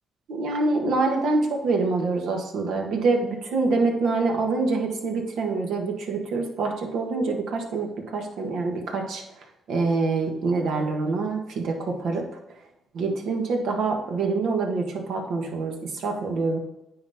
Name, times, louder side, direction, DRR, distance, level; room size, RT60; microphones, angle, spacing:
voice 1, 0.3-9.2 9.7-12.2 12.9-16.6, right 3 dB, 75° right, 2 dB, 1.5 m, -25 dB
9.5 x 4.1 x 4.2 m, 0.95 s
cardioid pair, 90°, 0 cm